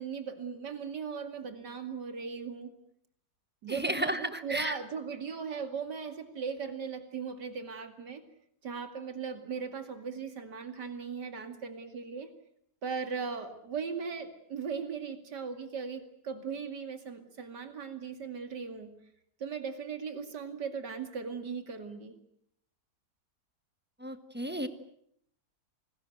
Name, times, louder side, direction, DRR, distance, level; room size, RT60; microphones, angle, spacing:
voice 1, 0.0-2.7 3.6-8.2 8.6-12.3 12.8-18.9 19.4-22.2, right 6 dB, 80° right, 8 dB, 2.9 m, -38 dB
voice 2, 3.7-4.7 24.0-24.7, equal, 5° right, 10 dB, 1.3 m, -33 dB
28.0 x 20.0 x 7.8 m, 0.70 s
omnidirectional pair, 1.8 m